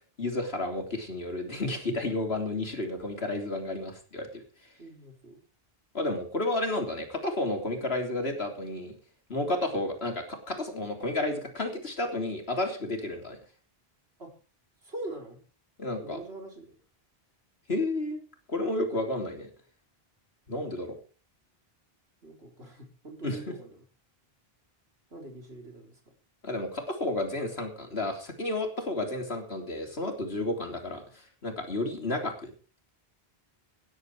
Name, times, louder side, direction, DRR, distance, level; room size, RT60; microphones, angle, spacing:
voice 1, 0.2-4.4 5.9-8.9 9.3-13.4 15.8-16.2 17.7-18.2 18.5-19.5 20.5-21.0 23.2-23.5 26.4-31.0 31.4-32.5, left 2 dB, 80° left, 4 dB, 3.7 m, -31 dB
voice 2, 4.8-5.4 14.2-14.4 14.8-15.4 15.9-16.7 22.2-23.8 25.1-26.0, right 2 dB, 80° right, 3 dB, 4.5 m, -43 dB
17.5 x 11.0 x 4.8 m, 0.38 s
omnidirectional pair, 1.0 m